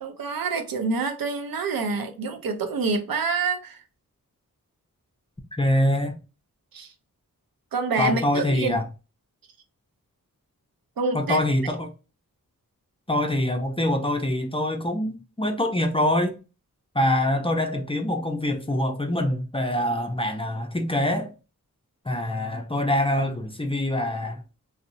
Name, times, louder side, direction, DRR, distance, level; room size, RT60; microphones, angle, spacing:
voice 1, 0.0-3.8 6.7-6.9 7.7-8.8 11.0-11.4, right 4 dB, 75° right, 0.5 m, -27 dB
voice 2, 5.6-6.1 8.0-8.8 11.1-11.9 13.1-16.4 16.9-21.3 22.1-24.4, left 1 dB, 15° left, 0.4 m, -24 dB
2.6 x 2.0 x 2.5 m
cardioid pair, 55°, 35 cm